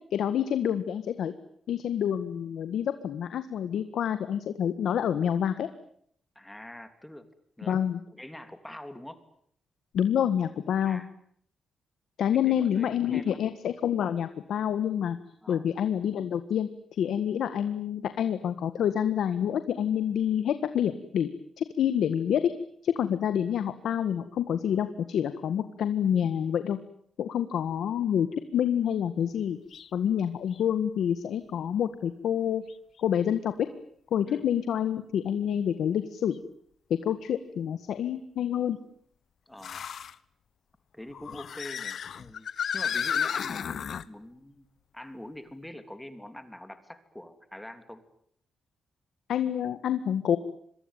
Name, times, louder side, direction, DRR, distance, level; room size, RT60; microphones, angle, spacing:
voice 1, 0.1-1.3 1.7-5.7 7.7-8.0 9.9-11.0 12.2-15.2 15.5-21.3 21.6-22.5 22.8-26.8 27.2-28.3 28.5-29.6 29.9-32.6 33.0-33.5 34.1-36.4 36.9-38.8 49.3-50.4, left 9 dB, 80° left, 11 dB, 1.7 m, -27 dB
voice 2, 6.3-7.3 7.6-7.8 8.1-9.2 10.8-11.1 12.3-13.4 15.4-15.6 34.3-34.4 39.5-39.8 40.9-42.5 42.7-44.7 44.9-48.0, left 1 dB, 5° left, 9 dB, 3.0 m, -44 dB
sound 1, 29.7-29.9 30.5-30.6 32.7-32.8 36.3-36.4 39.6-40.2 41.1-44.1, left 8 dB, 60° left, 1.2 m, -33 dB
26.5 x 23.5 x 9.1 m, 0.67 s
cardioid pair, 115°, 0 cm